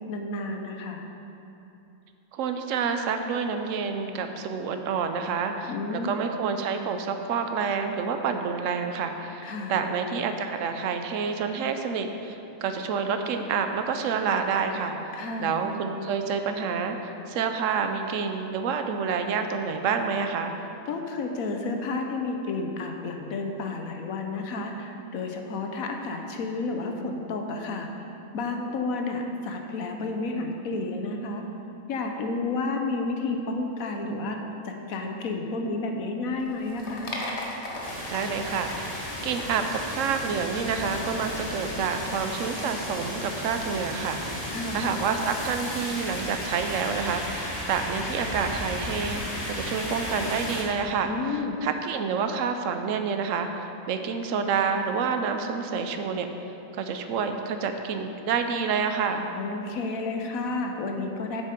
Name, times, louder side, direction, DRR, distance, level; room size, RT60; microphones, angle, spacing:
voice 1, 0.1-1.0 5.7-6.2 9.4-9.8 15.1-15.6 20.9-28.0 28.3-31.4 31.9-34.4 34.6-37.1 44.5-44.9 51.0-51.6 59.4-61.4, left 3 dB, 80° left, 3 dB, 1.2 m, -31 dB
voice 2, 2.3-15.0 15.4-20.6 38.1-56.3 56.7-59.3, right 5 dB, 70° right, 6 dB, 1.0 m, -28 dB
sound 1, 36.3-43.5, left 1 dB, 55° left, 1.3 m, -40 dB
sound 2, 37.8-50.6, left 1 dB, 25° left, 1.6 m, -34 dB
8.4 x 7.3 x 5.2 m, 2.9 s
omnidirectional pair, 1.5 m